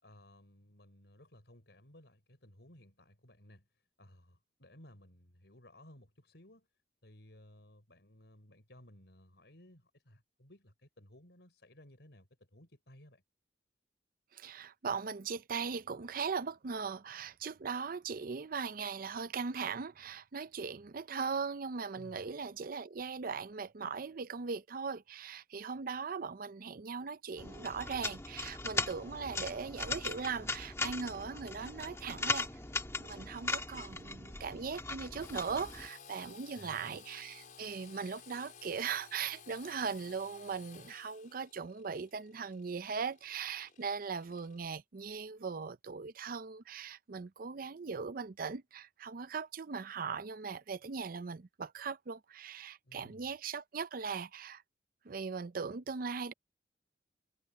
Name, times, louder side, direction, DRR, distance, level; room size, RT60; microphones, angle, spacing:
voice 1, 0.0-3.7 4.0-6.7 7.0-13.2 21.9-22.3 36.5-37.0 52.8-53.3, left 1 dB, 70° left, 5.7 m, -58 dB
voice 2, 14.3-32.6 33.0-54.6 55.0-56.3, right 5 dB, 55° right, 0.6 m, -39 dB
sound 1, 27.4-35.9, left 3 dB, 15° left, 1.8 m, -39 dB
Engine / Sawing, 35.2-44.7, left 6 dB, 50° left, 4.4 m, -56 dB
head